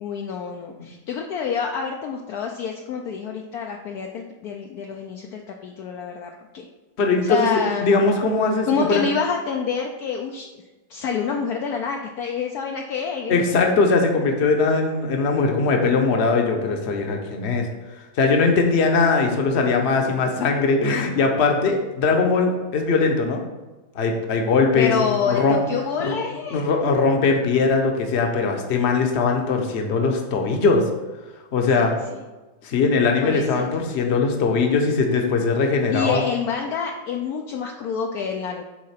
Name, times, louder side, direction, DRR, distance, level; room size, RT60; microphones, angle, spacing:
voice 1, 0.0-6.7 7.2-7.9 8.7-10.5 10.9-13.4 24.7-26.7 31.8-32.2 33.2-33.6 35.9-38.6, left 6 dB, 70° left, 2 dB, 1.0 m, -27 dB
voice 2, 7.0-9.0 13.3-17.7 18.2-23.4 23.9-24.9 25.2-25.6 26.0-26.2 26.5-30.8 31.5-31.9 32.6-36.2, left 4 dB, 45° left, 3 dB, 1.0 m, -20 dB
7.6 x 3.8 x 5.7 m, 1.2 s
omnidirectional pair, 1.9 m